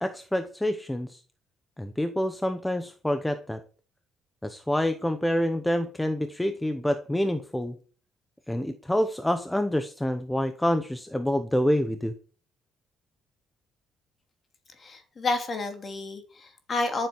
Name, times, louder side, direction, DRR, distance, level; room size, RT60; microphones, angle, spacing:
voice 1, 0.0-1.2 1.8-3.6 4.4-7.8 8.5-12.1, left 1 dB, 5° left, 9 dB, 0.8 m, -27 dB
voice 2, 14.8-17.1, left 3 dB, 25° left, 6 dB, 2.9 m, -30 dB
14.0 x 7.7 x 7.1 m, 0.40 s
cardioid pair, 175°, 0 cm